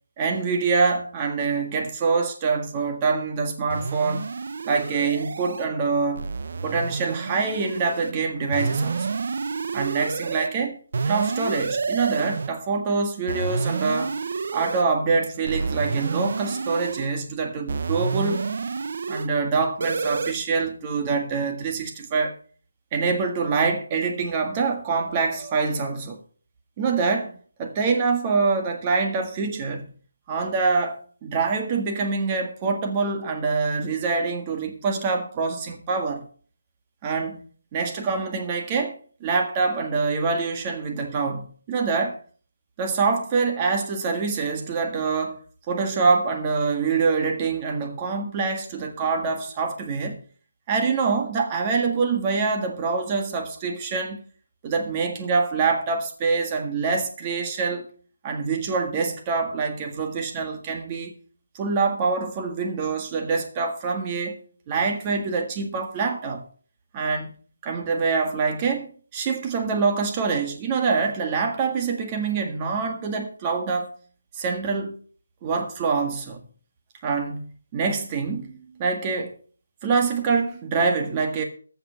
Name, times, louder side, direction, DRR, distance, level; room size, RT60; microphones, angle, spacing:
voice 1, 0.2-4.2 4.6-6.2 6.6-9.2 9.7-10.8 11.1-14.2 14.5-18.5 19.1-22.4 22.9-26.2 26.8-29.9 30.3-36.3 37.0-37.5 37.7-42.2 42.8-45.4 45.7-50.2 50.7-54.2 54.6-57.9 58.2-61.1 61.5-64.4 64.7-66.5 66.9-67.3 67.6-73.9 74.3-75.0 75.4-76.5 77.0-79.3 79.8-81.4, right 4 dB, 20° right, 1.7 m, -25 dB
sound 1, 3.7-5.7 6.2-8.1 8.5-10.5 10.9-12.5 13.3-14.8 15.4-17.1 17.7-19.3 19.8-20.3, right 4 dB, 50° right, 0.9 m, -29 dB
14.5 x 5.9 x 6.6 m
figure-of-eight pair, 170°, 0 cm